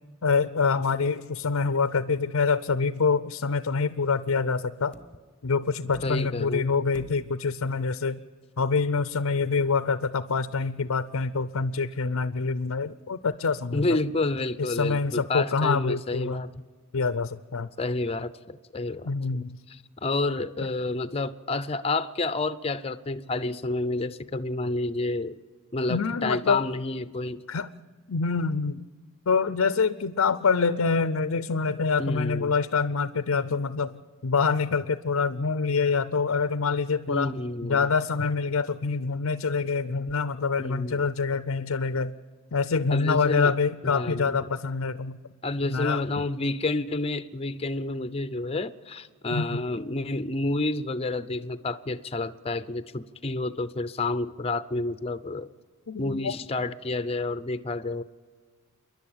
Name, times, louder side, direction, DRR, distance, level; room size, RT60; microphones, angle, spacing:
voice 1, 0.2-4.9 5.4-8.2 8.6-13.9 14.6-16.4 16.9-17.7 19.0-19.6 25.9-26.6 27.5-27.7 28.1-28.9 29.3-34.0 34.2-37.3 37.6-42.1 42.5-45.2 45.6-46.0 49.3-49.6 55.9-56.3, left 4 dB, 65° left, 14 dB, 0.6 m, -26 dB
sound 1, 4.9-5.3 5.9-6.5 6.9-7.5 8.8-8.9, equal, 5° left, 1.0 m, -48 dB
voice 2, 6.0-6.8 13.7-16.5 17.8-19.1 19.7-25.4 25.7-27.4 32.0-32.5 37.1-37.9 40.6-41.0 42.9-43.5 43.8-44.4 45.4-55.5 56.0-58.0, left 2 dB, 25° left, 13 dB, 0.6 m, -29 dB
28.5 x 11.0 x 8.8 m, 1.5 s
head